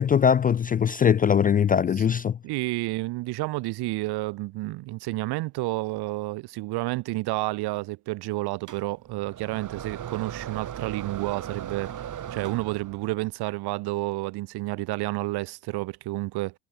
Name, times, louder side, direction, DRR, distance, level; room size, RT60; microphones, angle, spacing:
voice 1, 0.0-2.4, left 8 dB, 20° left, 0.4 m, -21 dB
voice 2, 2.4-16.5, right 20 dB, 65° right, 3.8 m, -30 dB
sound 1, 8.7-13.2, right 10 dB, 45° right, 6.8 m, -38 dB
hypercardioid pair, 75°, 42 cm